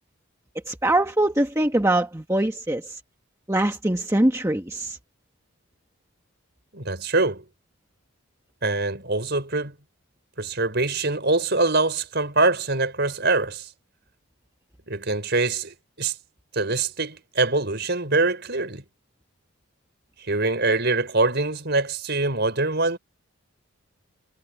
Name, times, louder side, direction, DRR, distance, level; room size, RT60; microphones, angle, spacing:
voice 1, 0.7-3.0 3.5-5.0, right 1 dB, 15° right, 1.2 m, -23 dB
voice 2, 6.7-7.4 8.6-9.8 10.4-13.7 14.9-16.1 16.5-18.8 20.2-23.0, right 3 dB, 50° right, 5.4 m, -24 dB
head